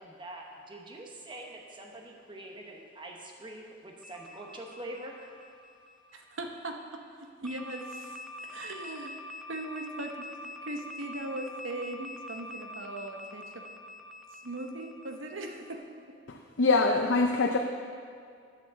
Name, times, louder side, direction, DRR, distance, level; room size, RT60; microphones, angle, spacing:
voice 1, 0.0-5.1, right 1 dB, 25° right, 1 dB, 1.0 m, -44 dB
sound 1, 4.0-6.6 7.5-15.8, left 2 dB, ahead, 0.4 m, -45 dB
voice 2, 6.1-9.2 9.5-13.6 14.4-16.2, right 2 dB, 85° right, 3 dB, 1.0 m, -39 dB
voice 3, 16.3-17.6, left 3 dB, 70° left, 3 dB, 0.5 m, -24 dB
9.4 x 6.0 x 6.8 m, 2.2 s
head